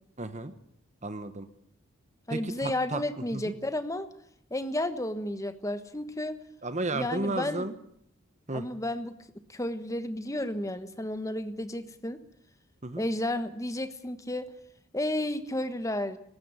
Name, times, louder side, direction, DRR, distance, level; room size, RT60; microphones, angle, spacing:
voice 1, 0.2-0.5 1.0-1.5 2.3-3.0 3.3-3.5 6.6-7.7 8.5-8.6 12.8-13.0, right 2 dB, 35° right, 10 dB, 1.2 m, -33 dB
voice 2, 2.3-4.1 4.5-6.4 6.9-7.7 8.5-9.2 9.5-12.2 13.0-14.5 14.9-16.2, left 1 dB, 15° left, 11 dB, 1.3 m, -32 dB
19.5 x 15.5 x 9.7 m, 0.69 s
head